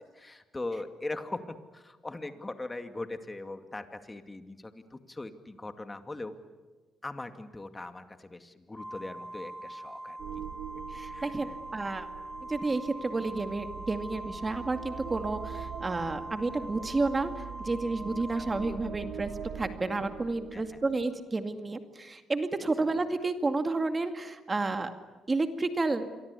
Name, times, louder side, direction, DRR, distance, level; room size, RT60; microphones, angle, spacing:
voice 1, 0.0-6.3 7.0-10.2 11.1-11.6 18.4-18.5 20.5-20.8, left 2 dB, 20° left, 8 dB, 2.3 m, -40 dB
Organ, 8.8-19.5, right 1 dB, 5° left, 3.3 m, -43 dB
sound 1, 10.2-21.0, right 9 dB, 80° right, 2.5 m, -43 dB
voice 2, 10.9-12.1 12.5-24.9 25.3-26.1, right 3 dB, 25° right, 7 dB, 2.2 m, -31 dB
27.5 x 24.0 x 8.4 m, 1.3 s
cardioid pair, 90°, 0 cm